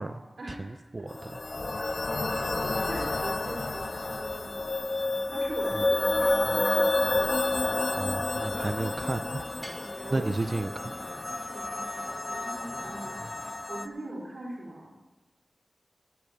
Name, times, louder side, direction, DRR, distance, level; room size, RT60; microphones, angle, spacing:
voice 1, 0.5-1.4 1.9-2.2 5.8-5.9 7.9-9.4 10.1-10.9 11.8-12.0, right 2 dB, 35° right, 10 dB, 0.5 m, -33 dB
sound 1, 1.1-13.9, left 2 dB, 40° left, 0.6 m, -30 dB
voice 2, 2.2-4.6 5.3-7.7 10.0-10.8 11.5-11.8 12.8-13.2 13.7-15.0, right 1 dB, 70° right, -4 dB, 3.5 m, -41 dB
sound 2, 8.5-13.5, equal, 5° right, 1.2 m, -46 dB
9.2 x 8.7 x 8.4 m, 1.2 s
wide cardioid pair, 95°, 0 cm